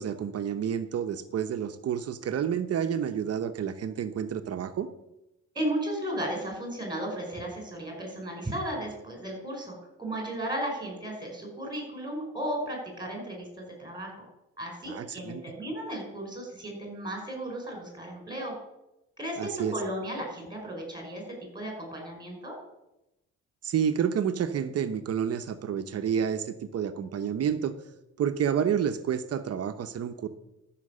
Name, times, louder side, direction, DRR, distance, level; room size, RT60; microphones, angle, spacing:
voice 1, 0.0-4.9 14.9-15.4 19.4-19.7 23.6-27.7 28.2-30.3, right 8 dB, 55° right, 9 dB, 0.8 m, -29 dB
voice 2, 5.6-14.3 14.6-18.5 19.2-22.5, right 1 dB, 15° right, 1 dB, 5.2 m, -35 dB
13.5 x 5.9 x 6.5 m, 0.92 s
cardioid pair, 90°, 30 cm